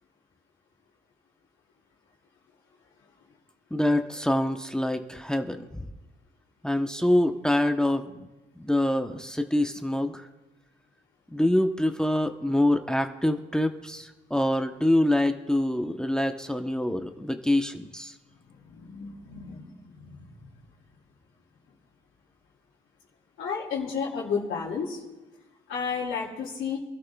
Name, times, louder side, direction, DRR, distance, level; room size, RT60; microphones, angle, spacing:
voice 1, 3.7-5.9 6.6-8.3 8.6-10.3 11.3-18.1, left 1 dB, 5° left, 6 dB, 0.9 m, -25 dB
voice 2, 18.5-19.7 20.0-20.5 23.4-25.0 25.7-26.8, left 6 dB, 80° left, -6 dB, 2.6 m, -32 dB
27.0 x 12.5 x 2.3 m, 1.1 s
cardioid pair, 90°, 20 cm